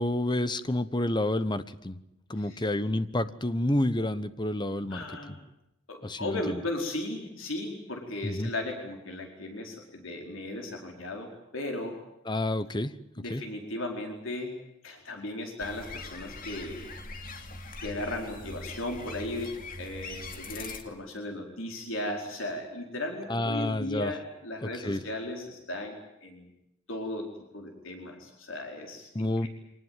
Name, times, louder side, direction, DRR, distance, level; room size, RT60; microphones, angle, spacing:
voice 1, 0.0-2.0 2.3-5.0 6.0-6.6 8.2-8.5 12.2-12.9 13.3-13.4 23.3-24.1 24.6-25.0 29.1-29.5, left 1 dB, 20° left, 13 dB, 1.1 m, -29 dB
voice 2, 2.4-2.7 4.9-5.3 5.9-11.9 13.2-14.5 14.8-16.9 17.8-26.5 26.9-27.3 27.5-29.5, left 1 dB, 65° left, 2 dB, 4.7 m, -36 dB
sound 1, 15.6-20.8, left 3 dB, 40° left, 2.7 m, -42 dB
25.5 x 19.5 x 9.3 m, 0.85 s
head